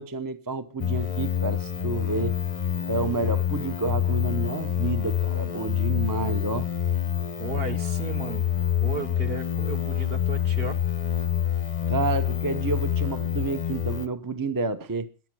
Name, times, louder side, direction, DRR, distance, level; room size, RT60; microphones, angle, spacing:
voice 1, 0.0-2.4 2.9-6.7 11.9-15.1, right 4 dB, 20° right, 0.6 m, -29 dB
sound 1, 0.8-14.1, left 9 dB, 35° left, 0.6 m, -27 dB
voice 2, 7.4-8.4 8.8-10.8, right 4 dB, 45° right, 1.4 m, -34 dB
15.0 x 10.5 x 6.1 m
omnidirectional pair, 1.5 m